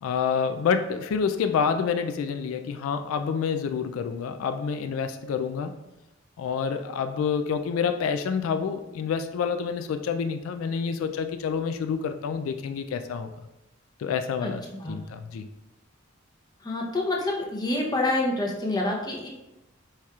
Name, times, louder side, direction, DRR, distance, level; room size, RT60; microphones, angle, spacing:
voice 1, 0.0-5.7 6.4-13.3 14.0-15.5, left 6 dB, 85° left, 9 dB, 0.3 m, -28 dB
voice 2, 16.6-19.3, left 2 dB, 20° left, -1 dB, 0.7 m, -27 dB
4.7 x 4.3 x 2.3 m, 0.94 s
head